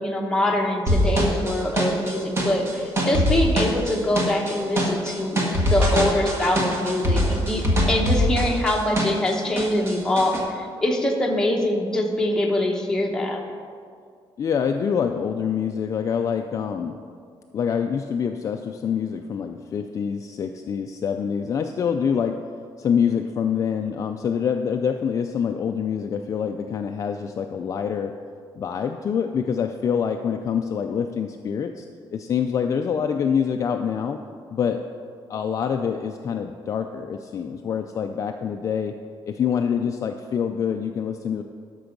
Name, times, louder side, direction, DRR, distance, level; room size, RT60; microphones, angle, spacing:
voice 1, 0.0-5.4 5.7-13.4, left 1 dB, 5° left, 0 dB, 1.0 m, -24 dB
sound 1, 0.9-9.3 9.6-10.4, equal, 30° right, 1.4 m, -23 dB
voice 2, 14.4-17.0 17.5-22.4 22.8-28.1 28.5-31.8 32.1-34.2 34.5-34.8 35.3-38.9 39.3-41.4, left 7 dB, 35° left, 5 dB, 0.4 m, -25 dB
12.5 x 6.1 x 5.2 m, 2.2 s
cardioid pair, 180°, 9 cm